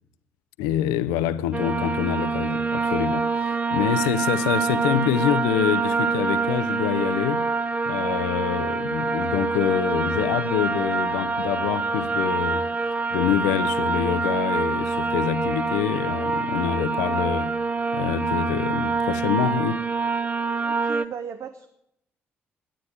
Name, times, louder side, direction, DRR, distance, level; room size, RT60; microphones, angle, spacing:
voice 1, 0.6-7.5 7.8-12.7 13.1-17.6 17.9-19.9, left 11 dB, 70° left, 0.5 m, -26 dB
sound 1, 1.5-21.1, right 4 dB, 20° right, 0.6 m, -25 dB
voice 2, 20.6-21.7, right 7 dB, 50° right, 0.8 m, -36 dB
12.5 x 9.1 x 8.6 m
figure-of-eight pair, 45°, 6 cm